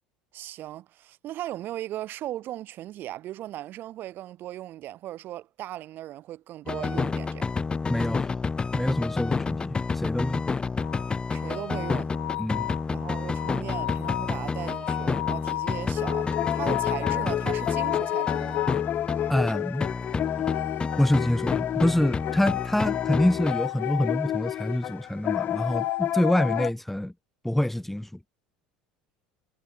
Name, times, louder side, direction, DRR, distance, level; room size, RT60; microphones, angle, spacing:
voice 1, 0.3-7.5 11.3-12.1 12.9-18.6, right 14 dB, 50° right, 4.5 m, -37 dB
sound 1, 6.7-19.6 19.8-23.7, left 4 dB, 20° left, 2.5 m, -30 dB
voice 2, 7.9-8.4 8.7-10.4 12.4-12.7 19.3-19.9 20.4-20.6 21.0-27.1 27.4-28.1, left 1 dB, 5° left, 1.1 m, -26 dB
sound 2, 10.8-18.9 20.1-21.4 22.2-24.1 25.3-26.7, left 21 dB, 70° left, 3.5 m, -34 dB
sound 3, 16.0-26.7, left 12 dB, 45° left, 1.0 m, -31 dB
hypercardioid pair, 90°, 5 cm